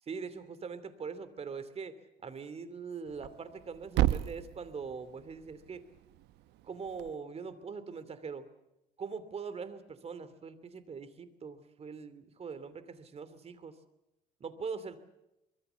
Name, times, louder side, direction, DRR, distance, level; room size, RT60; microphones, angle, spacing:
voice 1, 0.1-1.9 2.2-5.8 6.6-8.5 9.0-13.8 14.4-15.0, right 5 dB, 35° right, 14 dB, 2.8 m, -42 dB
Thump thud, 3.1-7.2, right 14 dB, 85° right, 1.0 m, -35 dB
24.0 x 23.0 x 7.0 m, 0.91 s
cardioid pair, 110°, 17 cm